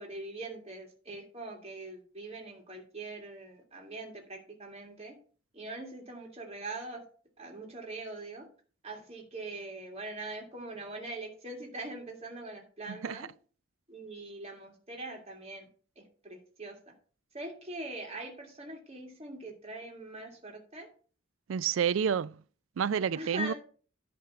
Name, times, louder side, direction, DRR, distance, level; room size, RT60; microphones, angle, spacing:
voice 1, 0.0-5.2 5.5-7.0 7.4-8.5 8.8-13.3 13.9-15.7 16.0-16.8 17.3-20.9 23.1-23.5, right 2 dB, 30° right, 2.1 m, -42 dB
voice 2, 12.9-13.3 21.5-22.4 22.8-23.5, right 7 dB, 85° right, 0.4 m, -29 dB
10.5 x 3.6 x 6.9 m
head